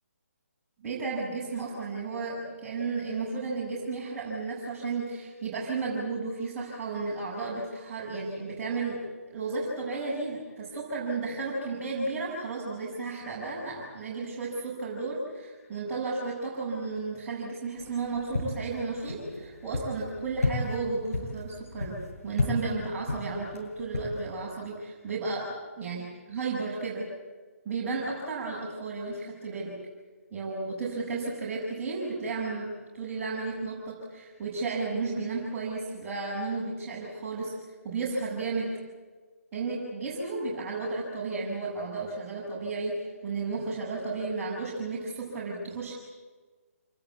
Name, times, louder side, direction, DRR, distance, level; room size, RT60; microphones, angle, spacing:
voice 1, 0.8-27.1 27.6-29.8 30.3-37.5 37.8-38.8 39.5-45.9, right 3 dB, 15° right, -8 dB, 6.3 m, -33 dB
sound 1, 17.8-24.5, left 2 dB, 65° left, 7.9 m, -34 dB
27.5 x 20.0 x 8.5 m, 1.4 s
figure-of-eight pair, 140°, 8 cm